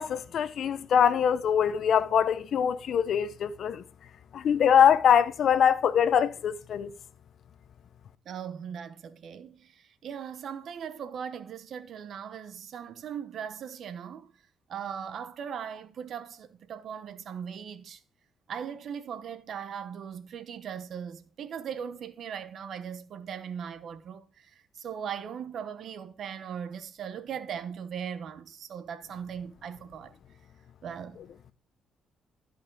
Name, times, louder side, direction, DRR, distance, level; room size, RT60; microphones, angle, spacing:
voice 1, 0.0-3.8 4.3-6.9, left 8 dB, 65° left, 0.8 m, -23 dB
voice 2, 8.3-9.7 10.0-14.3 14.7-18.0 18.5-24.2 24.8-30.1 30.8-31.2, right 8 dB, 65° right, 1.0 m, -39 dB
13.5 x 5.2 x 4.6 m
cardioid pair, 90°, 0 cm